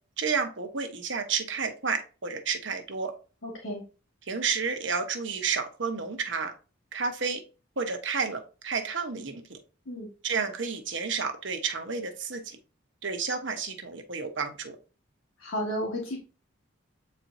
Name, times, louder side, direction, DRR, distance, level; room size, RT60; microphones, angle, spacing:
voice 1, 0.2-3.1 4.3-6.5 6.9-7.4 7.8-9.6 10.2-12.6 13.0-14.8, right 5 dB, 65° right, 5 dB, 1.2 m, -31 dB
voice 2, 3.4-3.8 9.9-10.1 15.4-16.2, equal, 90° left, -2 dB, 1.8 m, -32 dB
8.3 x 4.5 x 2.8 m, 0.34 s
head